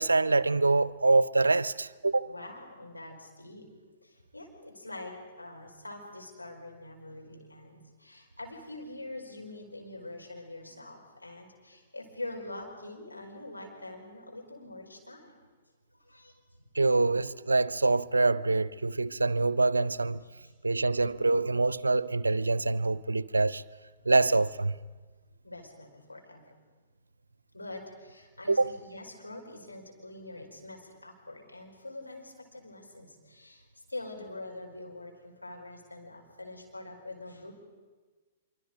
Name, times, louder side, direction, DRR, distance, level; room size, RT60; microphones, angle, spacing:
voice 1, 0.0-2.3 16.7-20.2 20.6-23.6 24.1-24.7 28.5-28.8, right 3 dB, 80° right, 0.6 m, -25 dB
voice 2, 2.2-3.7 4.0-15.4 15.9-16.3 20.4-20.5 25.4-26.4 27.5-37.5, left 2 dB, 90° left, 4.7 m, -44 dB
25.0 x 24.5 x 5.1 m
figure-of-eight pair, 110°, 0 cm